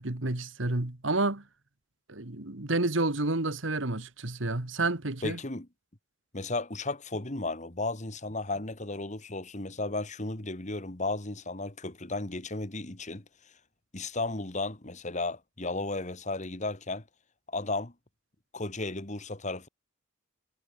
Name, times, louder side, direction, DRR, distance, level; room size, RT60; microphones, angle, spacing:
voice 1, 0.0-1.4 2.1-5.4, right 2 dB, 70° right, 2.0 m, -30 dB
voice 2, 5.2-5.7 6.3-13.2 13.9-17.0 17.5-17.9 18.5-19.7, left 2 dB, 35° left, 2.3 m, -34 dB
head